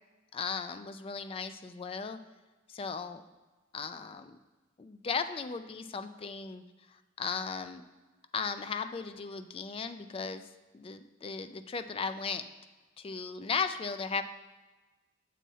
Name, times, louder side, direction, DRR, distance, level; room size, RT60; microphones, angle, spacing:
voice 1, 0.3-2.2 2.7-3.2 3.7-4.4 4.8-6.6 7.2-7.8 8.3-10.4 10.7-12.4 13.0-14.2, left 5 dB, 30° left, 10 dB, 0.3 m, -36 dB
7.3 x 4.1 x 5.4 m, 1.2 s
head